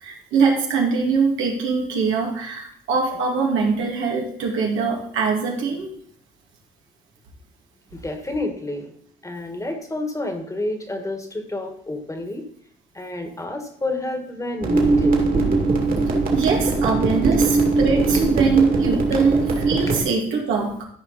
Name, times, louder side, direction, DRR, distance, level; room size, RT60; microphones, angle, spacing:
voice 1, 0.0-5.9 16.3-20.8, right 5 dB, 85° right, -1 dB, 2.4 m, -22 dB
voice 2, 7.9-8.9 9.2-12.4 12.9-15.2, left 2 dB, 15° left, 5 dB, 1.6 m, -29 dB
sound 1, 14.6-20.0, right 3 dB, 45° right, 2.4 m, -20 dB
13.5 x 5.2 x 4.2 m, 0.63 s
cardioid pair, 90°, 20 cm